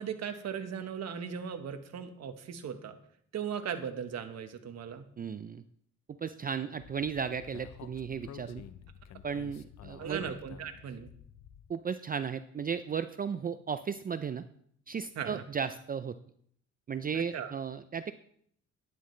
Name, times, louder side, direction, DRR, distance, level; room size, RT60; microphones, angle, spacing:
voice 1, 0.0-3.0 3.3-5.1 10.0-11.1 15.1-15.4 17.1-17.5, right 7 dB, 60° right, 7 dB, 1.3 m, -38 dB
voice 2, 5.2-5.6 6.2-8.6 9.2-10.2 11.7-14.4 14.9-16.1 16.9-18.1, right 6 dB, 30° right, 12 dB, 0.4 m, -35 dB
Speech, 6.8-11.7, left 9 dB, 60° left, 0.7 m, -50 dB
11.5 x 10.5 x 3.2 m, 0.65 s
cardioid pair, 90°, 30 cm